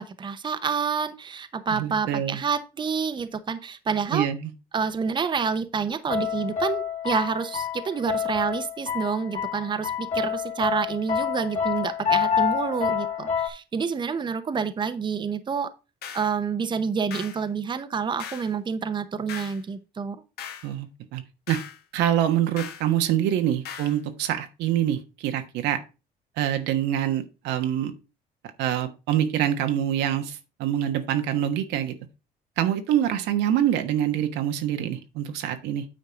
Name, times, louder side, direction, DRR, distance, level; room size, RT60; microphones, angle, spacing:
voice 1, 0.0-4.3 4.7-15.7 16.1-20.2, right 6 dB, 25° right, 11 dB, 0.8 m, -28 dB
voice 2, 1.7-2.4 4.1-4.5 20.6-21.2 21.5-21.6 21.9-25.8 26.4-27.9 28.6-31.9 32.6-35.8, right 11 dB, 90° right, 7 dB, 1.2 m, -25 dB
sound 1, 6.1-13.5, left 7 dB, 45° left, 2.5 m, -28 dB
sound 2, 16.0-16.3 17.1-17.4 18.2-18.5 19.3-19.6 20.4-20.7 21.5-21.8 22.6-22.9 23.7-24.0, left 8 dB, 70° left, 1.6 m, -38 dB
9.1 x 4.4 x 5.1 m, 0.29 s
cardioid pair, 110°, 17 cm